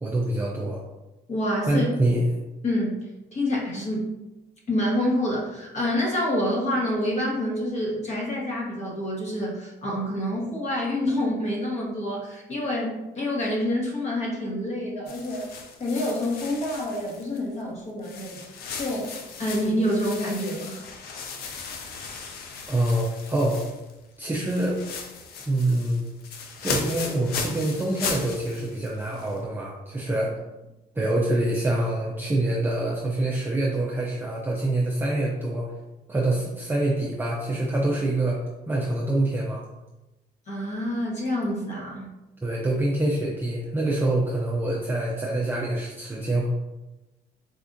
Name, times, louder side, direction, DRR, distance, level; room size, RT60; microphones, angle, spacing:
voice 1, 0.0-0.8 1.7-2.3 22.7-23.6 24.2-24.8 25.5-26.1 26.6-30.3 31.0-35.7 36.1-39.6 42.4-46.5, right 1 dB, 15° right, -4 dB, 0.4 m, -25 dB
voice 2, 1.3-1.9 2.6-2.9 3.3-4.1 4.7-15.5 15.8-18.4 18.8-19.1 19.4-20.8 40.5-42.1, left 1 dB, 40° left, -2 dB, 1.1 m, -27 dB
sound 1, 15.1-17.6 18.0-24.0 24.3-29.4, left 5 dB, 65° left, 0.5 m, -37 dB
4.3 x 2.3 x 2.6 m, 1.0 s
cardioid pair, 110°, 17 cm